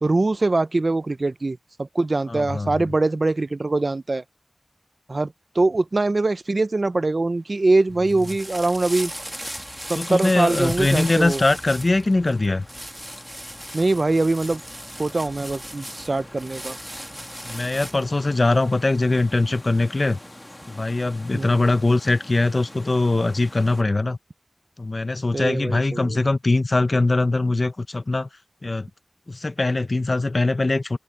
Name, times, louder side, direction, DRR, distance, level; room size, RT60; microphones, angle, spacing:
voice 1, 0.0-4.2 5.1-9.1 9.9-11.4 13.7-14.6 15.0-16.8 21.3-21.7 25.3-26.2, right 2 dB, 70° right, 0.6 m, -23 dB
voice 2, 2.3-2.7 9.9-12.7 17.4-20.2 20.7-24.2 24.8-28.3 28.6-28.9 29.3-31.0, left 2 dB, 65° left, 0.7 m, -22 dB
sound 1, 7.3-23.8, left 1 dB, 25° left, 1.4 m, -46 dB
sound 2, 7.9-18.1, equal, 10° right, 2.1 m, -37 dB
open air
wide cardioid pair, 50°, 0 cm